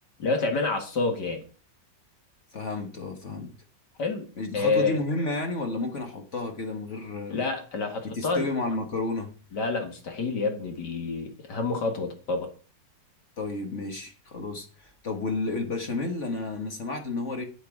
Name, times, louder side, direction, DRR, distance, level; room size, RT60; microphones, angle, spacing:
voice 1, 0.2-1.4 4.0-4.3 4.5-5.0 7.3-8.5 9.5-12.5, left 3 dB, 65° left, 2.5 m, -28 dB
voice 2, 2.5-3.5 4.4-7.4 8.0-9.3 13.4-17.5, left 2 dB, 40° left, 1.5 m, -31 dB
9.3 x 8.0 x 4.8 m
omnidirectional pair, 2.0 m